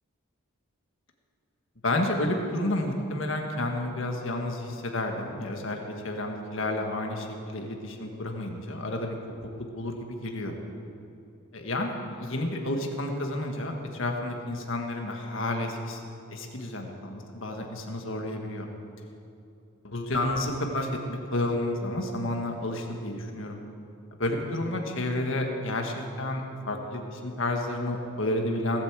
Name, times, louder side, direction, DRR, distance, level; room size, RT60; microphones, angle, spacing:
voice 1, 1.8-9.2 9.7-10.5 11.5-16.0 16.3-18.7 19.8-23.6 24.2-26.4 26.7-28.8, left 1 dB, 65° left, 2 dB, 1.7 m, -30 dB
18.0 x 8.3 x 7.5 m, 2.7 s
head